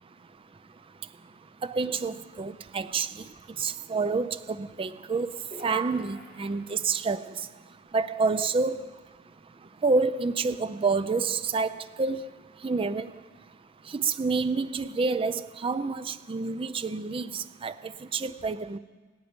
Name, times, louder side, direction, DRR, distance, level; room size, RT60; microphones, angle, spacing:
voice 1, 1.6-3.1 3.6-5.3 5.6-7.2 7.9-8.8 9.8-12.3 12.6-13.1 13.9-18.8, right 4 dB, 25° right, 13 dB, 0.4 m, -28 dB
sound 1, 5.5-7.0, equal, 45° right, 3.9 m, -47 dB
26.0 x 9.2 x 5.2 m, 1.4 s
head